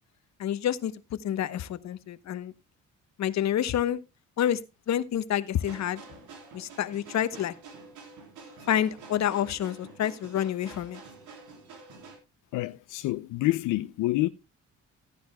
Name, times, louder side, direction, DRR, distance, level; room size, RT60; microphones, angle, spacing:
voice 1, 0.4-0.9 1.2-2.5 3.2-4.0 4.4-4.6 4.9-6.0 6.5-7.5 8.7-11.0, left 10 dB, 65° left, 1.0 m, -28 dB
sound 1, 5.5-12.2, right 4 dB, 80° right, 3.9 m, -48 dB
voice 2, 12.5-14.3, left 18 dB, 85° left, 0.5 m, -27 dB
15.0 x 10.0 x 2.2 m
cardioid pair, 90°, 30 cm